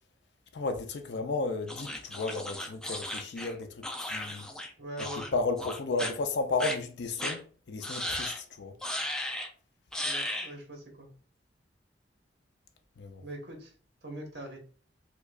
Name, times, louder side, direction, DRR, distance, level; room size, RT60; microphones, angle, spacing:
voice 1, 0.5-4.5 5.3-8.8 13.0-13.2, left 3 dB, 65° left, 0.5 m, -33 dB
sound 1, 1.7-4.7 5.0-5.3 5.6-6.1 6.6-6.8 7.2-7.4 7.8-8.4 8.8-9.5 9.9-10.5, left 1 dB, 5° left, 0.4 m, -35 dB
voice 2, 4.8-5.3 10.0-11.1 13.2-13.7 14.0-14.6, right 1 dB, 65° right, 1.2 m, -42 dB
4.6 x 2.3 x 2.4 m
head